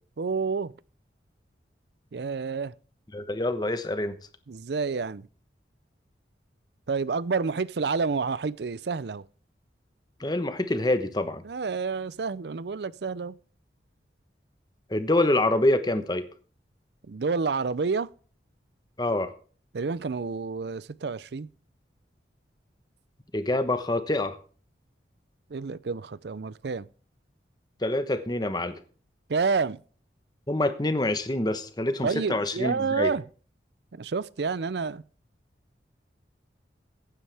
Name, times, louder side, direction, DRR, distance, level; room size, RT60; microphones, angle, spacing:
voice 1, 0.2-0.7 2.1-2.7 4.5-5.3 6.9-9.2 11.4-13.3 17.1-18.1 19.7-21.5 25.5-26.9 29.3-29.8 32.0-33.2 33.9-35.0, right 4 dB, 65° right, 0.5 m, -29 dB
voice 2, 3.1-4.1 10.2-11.4 14.9-16.2 19.0-19.3 23.3-24.4 27.8-28.8 30.5-33.1, left 1 dB, 25° left, 1.0 m, -26 dB
15.0 x 9.9 x 3.4 m
head